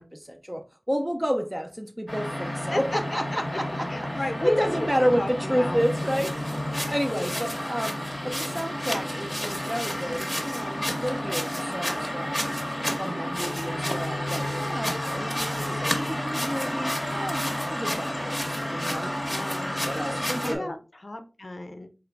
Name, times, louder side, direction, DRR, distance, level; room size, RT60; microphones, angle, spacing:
voice 1, 0.0-4.1 4.4-12.4 13.0-19.2 19.9-20.7, equal, 10° right, 0.4 m, -30 dB
sound 1, 2.1-20.6, equal, 10° left, 1.0 m, -30 dB
voice 2, 3.9-5.8 6.7-6.8 15.1-15.8 19.3-19.9 20.4-20.8 21.0-21.9, left 2 dB, 45° left, 0.5 m, -34 dB
3.8 x 2.9 x 3.3 m
wide cardioid pair, 65°, 0 cm